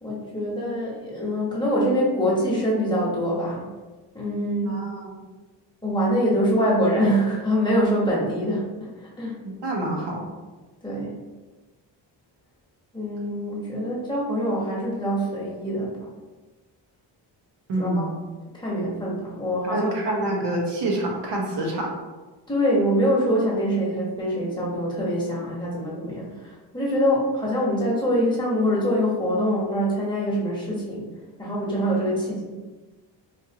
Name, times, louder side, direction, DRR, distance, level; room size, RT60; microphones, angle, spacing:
voice 1, 0.0-3.7 4.1-4.8 5.8-9.4 10.8-11.1 12.9-16.0 17.8-18.1 18.5-20.2 22.5-31.0 31.4-32.4, equal, 10° left, -6 dB, 1.0 m, -24 dB
voice 2, 4.7-5.2 9.4-10.3 17.7-18.1 19.7-21.9, right 1 dB, 65° right, -1 dB, 1.0 m, -27 dB
4.2 x 2.6 x 2.8 m, 1.2 s
cardioid pair, 130°, 45 cm